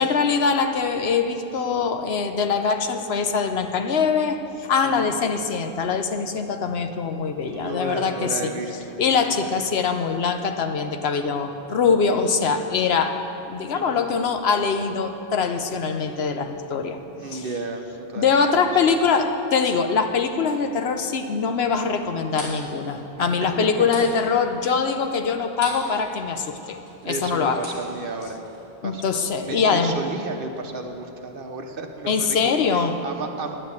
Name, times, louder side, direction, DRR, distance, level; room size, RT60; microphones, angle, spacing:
voice 1, 0.0-8.5 9.0-17.0 17.3-17.4 18.2-26.8 27.1-27.6 28.8-29.9 32.1-32.9, left 5 dB, 75° left, 7 dB, 1.0 m, -23 dB
voice 2, 4.8-5.1 7.5-9.0 9.3-9.6 13.7-13.8 17.2-18.3 23.2-23.3 23.6-23.7 25.9-26.0 27.0-28.4 28.8-29.0 29.4-33.7, right 3 dB, 60° right, 4 dB, 1.1 m, -33 dB
sound 1, 21.9-25.9 26.2-28.6, equal, 35° left, 3.6 m, -39 dB
10.5 x 8.5 x 8.4 m, 3.0 s
omnidirectional pair, 1.1 m